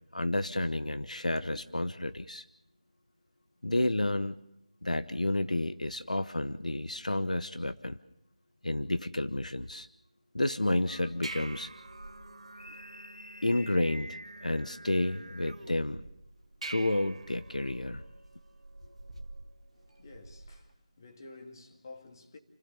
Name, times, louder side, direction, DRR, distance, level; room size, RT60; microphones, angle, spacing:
voice 1, 0.1-2.4 3.6-4.4 4.8-8.0 8.6-9.9 10.3-11.7 12.6-16.0 16.6-18.0, left 1 dB, 85° left, 1.0 m, -31 dB
sound 1, 10.8-20.7, right 2 dB, 60° right, 1.8 m, -48 dB
Singing, 10.9-15.9, right 1 dB, 90° right, 1.7 m, -50 dB
voice 2, 19.7-22.4, left 3 dB, 35° left, 2.5 m, -51 dB
29.0 x 15.5 x 6.9 m
figure-of-eight pair, 165°, 4 cm